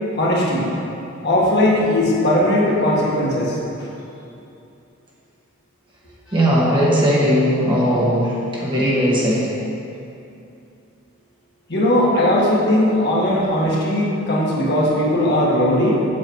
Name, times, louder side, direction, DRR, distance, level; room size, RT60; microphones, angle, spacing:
voice 1, 0.1-0.7 1.2-3.9 11.7-16.1, left 1 dB, 50° left, -5 dB, 1.5 m, -18 dB
voice 2, 6.3-9.5, equal, 20° right, -7 dB, 1.5 m, -18 dB
7.6 x 6.2 x 4.6 m, 2.7 s
head